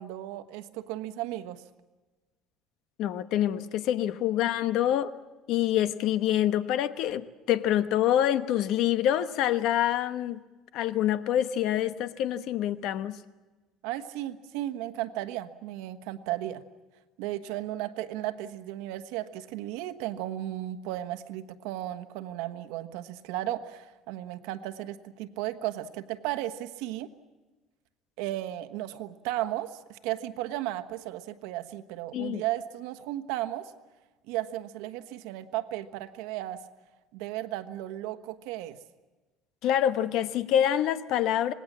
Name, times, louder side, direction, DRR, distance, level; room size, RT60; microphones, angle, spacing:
voice 1, 0.0-1.6 13.8-16.6 17.2-27.1 28.2-33.7 34.3-36.6 37.1-38.8, right 14 dB, 90° right, 8 dB, 1.3 m, -35 dB
voice 2, 3.0-5.1 5.5-10.4 10.7-13.2 32.1-32.4 39.6-41.5, left 11 dB, 60° left, 12 dB, 1.0 m, -26 dB
26.5 x 19.5 x 7.5 m, 1.2 s
cardioid pair, 160°, 0 cm